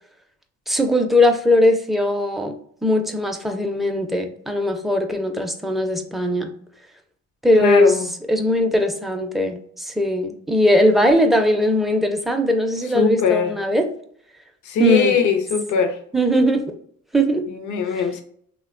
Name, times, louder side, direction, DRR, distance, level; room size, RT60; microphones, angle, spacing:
voice 1, 0.7-2.5 2.8-6.5 7.4-7.9 8.3-13.9 14.8-15.2 16.1-16.7 17.1-17.5, left 1 dB, ahead, 0.4 m, -19 dB
voice 2, 7.5-8.1 12.9-13.5 14.6-16.0 17.5-18.2, left 6 dB, 75° left, 0.5 m, -21 dB
3.1 x 2.1 x 2.4 m
cardioid pair, 90°, 30 cm